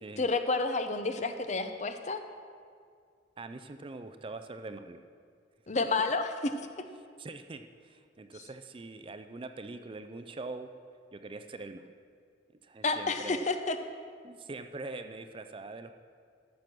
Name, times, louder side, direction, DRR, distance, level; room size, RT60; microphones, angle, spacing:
voice 1, 0.2-2.2 5.7-6.3 6.6-6.7 12.8-13.8, left 3 dB, 40° left, 8 dB, 0.6 m, -30 dB
voice 2, 3.4-5.0 7.2-10.7 11.1-11.9 12.6-13.5 14.2-15.9, right 3 dB, 30° right, 8 dB, 0.4 m, -43 dB
13.5 x 6.2 x 6.0 m, 2.1 s
head